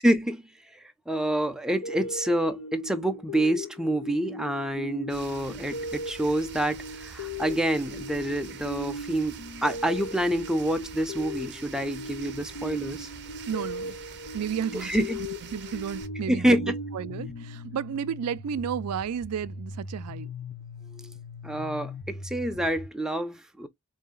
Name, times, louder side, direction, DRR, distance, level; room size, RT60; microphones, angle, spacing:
voice 1, 0.0-13.1 14.7-15.2 16.3-16.8 20.9-21.1 21.4-23.7, right 1 dB, 5° right, 0.6 m, -27 dB
sound 1, 1.8-18.2, left 1 dB, 80° left, 0.8 m, -39 dB
sound 2, 5.1-16.1, right 6 dB, 50° right, 0.7 m, -45 dB
voice 2, 13.5-14.0 14.3-14.9 15.5-20.3, right 8 dB, 75° right, 0.4 m, -32 dB
sound 3, 16.0-22.9, left 3 dB, 45° left, 0.7 m, -40 dB
3.9 x 2.8 x 3.7 m
head